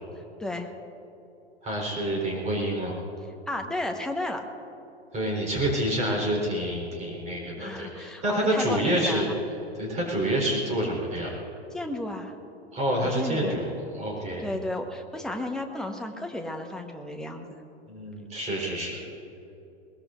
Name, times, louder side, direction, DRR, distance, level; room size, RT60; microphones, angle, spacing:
voice 1, 0.4-0.7 3.5-4.4 7.6-9.4 11.7-12.3 13.0-13.6 14.4-17.4, left 1 dB, ahead, 2 dB, 1.3 m, -33 dB
voice 2, 1.6-2.9 5.1-9.3 9.8-11.3 12.7-13.7 13.9-14.4 17.9-19.0, right 1 dB, 20° right, -2 dB, 4.2 m, -27 dB
22.0 x 20.5 x 2.6 m, 3.0 s
figure-of-eight pair, 100°, 33 cm